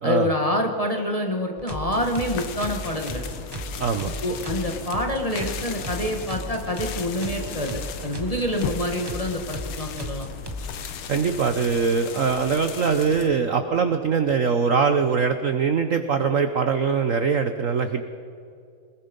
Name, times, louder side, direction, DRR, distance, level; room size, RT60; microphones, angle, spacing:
voice 1, 0.0-3.2 4.2-10.3, left 1 dB, 20° left, 2 dB, 1.5 m, -27 dB
sound 1, 1.6-10.7, right 1 dB, 15° right, 0.8 m, -35 dB
sound 2, 1.9-13.3, left 8 dB, 80° left, 1.9 m, -37 dB
voice 2, 3.8-4.1 11.1-18.0, right 5 dB, 55° right, 8 dB, 0.9 m, -22 dB
24.0 x 21.0 x 5.3 m, 2.3 s
omnidirectional pair, 2.3 m